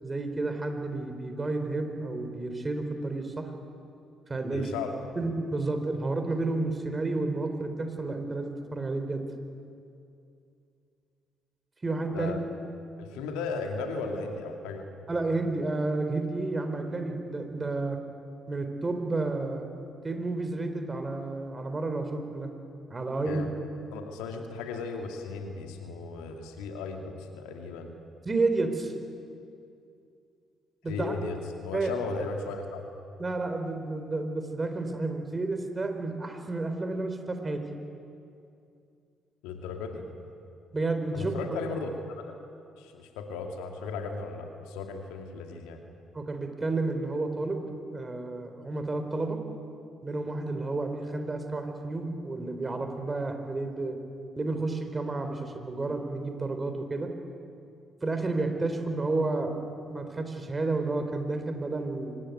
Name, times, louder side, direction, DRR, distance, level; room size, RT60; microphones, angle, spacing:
voice 1, 0.0-3.5 4.3-4.7 5.2-9.2 11.8-12.4 15.1-18.0 18.5-19.7 20.0-22.5 22.9-23.5 28.3-28.9 30.8-31.1 31.7-31.9 33.2-37.6 40.7-41.4 46.1-47.6 47.9-49.4 50.0-54.0 54.4-57.1 58.0-59.5 59.9-62.1, right 3 dB, 25° right, 6 dB, 3.9 m, -31 dB
voice 2, 4.5-5.1 12.1-12.4 13.0-14.9 23.3-23.5 23.9-28.0 30.9-31.4 31.6-32.8 39.4-40.0 41.1-42.4 42.8-45.8, left 4 dB, 70° left, 4 dB, 2.4 m, -36 dB
25.0 x 19.0 x 9.4 m, 2.5 s
figure-of-eight pair, 45°, 0 cm